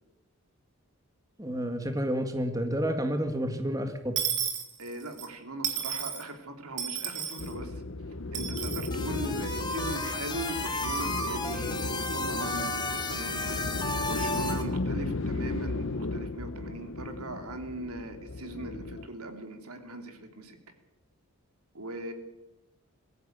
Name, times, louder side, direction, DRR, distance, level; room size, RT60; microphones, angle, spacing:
voice 1, 1.4-4.3, equal, 15° right, 6 dB, 1.8 m, -30 dB
Dishes pots and pans / Coin (dropping), 4.2-5.3 5.6-6.2 6.8-7.5 8.3-8.9, right 8 dB, 50° right, 3.2 m, -32 dB
voice 2, 4.8-7.8 8.3-20.6 21.7-22.1, right 2 dB, 85° right, 6 dB, 3.0 m, -40 dB
sound 1, 7.4-19.1, left 2 dB, 60° left, 0.9 m, -35 dB
sound 2, 8.9-14.6, left 1 dB, 20° left, 2.1 m, -33 dB
21.5 x 14.0 x 9.3 m, 0.96 s
head